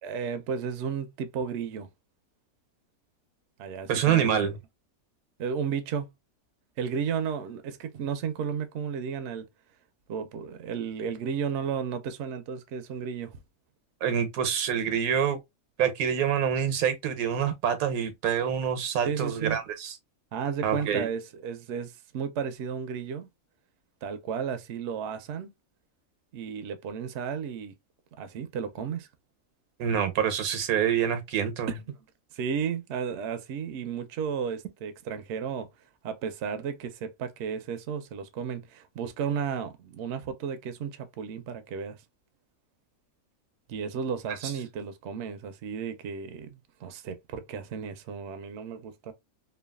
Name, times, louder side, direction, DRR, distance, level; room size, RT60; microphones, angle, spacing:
voice 1, 0.0-1.9 3.6-4.4 5.4-6.1 6.8-9.5 10.1-13.4 19.0-19.6 20.3-23.3 24.0-25.5 26.3-27.7 28.2-29.1 31.7-32.0 32.3-35.7 36.0-42.0 43.7-49.1, right 7 dB, 65° right, 0.7 m, -33 dB
voice 2, 3.9-4.6 14.0-15.4 15.8-19.9 20.6-21.1 29.8-31.7 44.4-44.5, right 8 dB, 85° right, 1.2 m, -26 dB
3.1 x 2.3 x 2.2 m
omnidirectional pair, 1.5 m